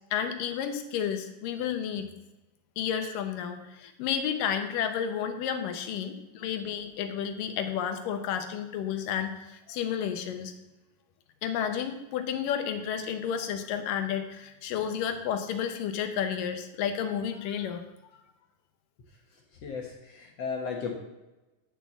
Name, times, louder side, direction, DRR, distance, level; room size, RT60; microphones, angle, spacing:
voice 1, 0.1-2.1 2.8-10.5 11.4-17.8, left 8 dB, 80° left, 7 dB, 2.6 m, -31 dB
voice 2, 19.6-21.0, left 5 dB, 60° left, 1 dB, 2.0 m, -35 dB
10.5 x 5.7 x 7.3 m, 1.0 s
omnidirectional pair, 3.9 m